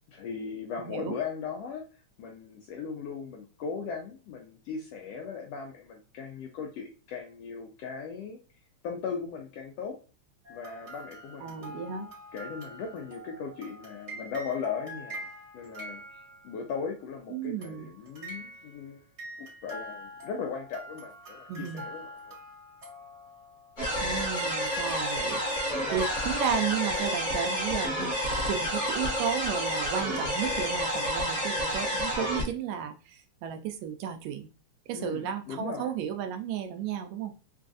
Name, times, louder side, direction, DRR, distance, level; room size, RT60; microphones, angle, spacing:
voice 1, 0.1-1.8 2.2-8.4 8.8-10.0 10.5-15.3 15.5-19.0 19.4-22.4 34.9-35.9, left 6 dB, 80° left, 1 dB, 1.5 m, -38 dB
voice 2, 0.8-1.2 11.4-12.1 17.3-17.9 21.5-21.8 24.0-25.4 25.9-28.1 28.5-34.5 34.9-37.3, right 8 dB, 80° right, 6 dB, 1.7 m, -33 dB
sound 1, 10.4-16.8 17.6-18.9 19.2-23.8 24.2-27.0, left 1 dB, 35° right, 1.0 m, -44 dB
sound 2, 23.8-32.4, equal, 50° left, 0.8 m, -29 dB
4.6 x 2.5 x 2.4 m, 0.34 s
omnidirectional pair, 3.3 m